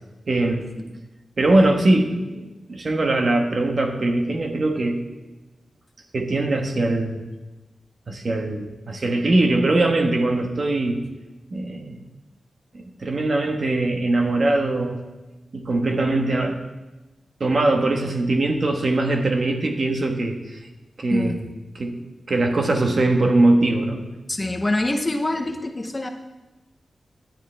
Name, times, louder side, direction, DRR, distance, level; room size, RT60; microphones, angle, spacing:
voice 1, 0.3-0.7 1.4-5.0 6.1-7.2 8.1-11.0 11.5-12.0 12.7-15.0 15.5-16.6 17.4-20.6 21.0-21.4 21.7-24.0, right 2 dB, 45° right, 4 dB, 1.3 m, -21 dB
voice 2, 21.1-21.4 24.3-26.1, left 2 dB, 20° left, 5 dB, 0.7 m, -25 dB
17.0 x 10.5 x 3.4 m, 1.1 s
wide cardioid pair, 155°, 0 cm